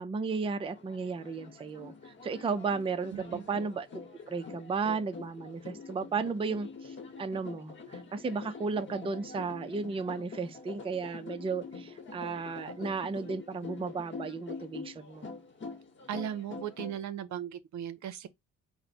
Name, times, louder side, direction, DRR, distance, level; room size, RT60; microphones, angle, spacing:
voice 1, 0.0-15.3, right 4 dB, 20° right, 0.4 m, -34 dB
sound 1, 0.6-17.0, left 4 dB, 40° left, 1.1 m, -45 dB
voice 2, 3.1-3.5 16.1-18.3, right 9 dB, 65° right, 0.6 m, -37 dB
4.2 x 2.1 x 4.1 m
cardioid pair, 90°, 30 cm